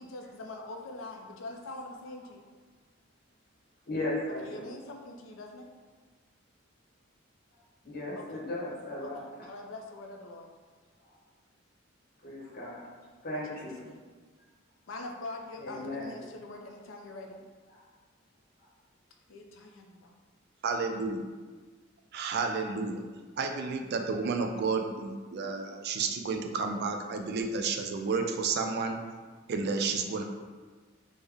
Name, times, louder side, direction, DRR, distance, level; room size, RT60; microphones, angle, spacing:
voice 1, 0.0-2.5 4.4-5.7 8.1-8.4 9.0-10.5 13.8-14.0 14.9-17.4 19.3-20.1, left 2 dB, 70° left, 2 dB, 0.4 m, -43 dB
voice 2, 3.9-4.7 7.8-9.2 11.0-11.2 12.2-12.8 13.2-13.8 15.6-16.2 17.7-17.8 18.6-18.7, left 1 dB, 50° left, -5 dB, 0.8 m, -36 dB
voice 3, 20.6-21.2 22.1-23.0 23.4-29.0 29.5-30.2, right 4 dB, 55° right, 4 dB, 0.3 m, -31 dB
3.5 x 2.1 x 3.3 m, 1.4 s
head